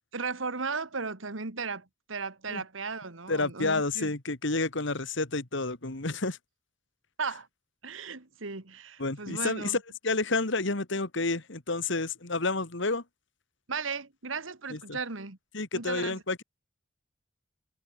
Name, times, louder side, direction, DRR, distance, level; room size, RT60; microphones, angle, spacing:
voice 1, 0.1-4.1 7.2-7.5 7.8-9.8 13.7-15.4 15.7-16.2, right 4 dB, 80° right, 1.9 m, -36 dB
voice 2, 3.3-6.4 9.0-9.8 10.0-13.0 14.7-15.0 15.5-16.4, left 3 dB, 65° left, 2.3 m, -30 dB
head